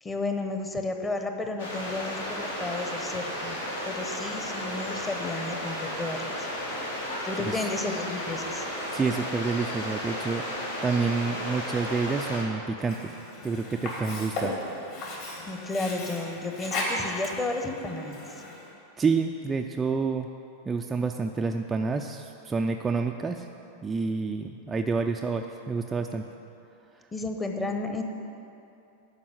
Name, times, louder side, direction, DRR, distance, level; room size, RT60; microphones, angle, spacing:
voice 1, 0.0-3.6 3.8-6.5 7.2-8.7 15.5-18.4 27.1-28.0, left 2 dB, 15° left, 4 dB, 1.0 m, -32 dB
sound 1, 1.6-12.4, left 1 dB, 75° left, 2.1 m, -34 dB
voice 2, 8.9-10.4 10.8-13.1 13.4-14.5 19.0-20.3 20.7-23.5 23.8-26.2, right 4 dB, 15° right, 3 dB, 0.4 m, -28 dB
Sink (filling or washing), 12.8-18.7, left 1 dB, 45° left, 2.5 m, -35 dB
11.5 x 5.3 x 8.1 m, 2.8 s
figure-of-eight pair, 90°, 0 cm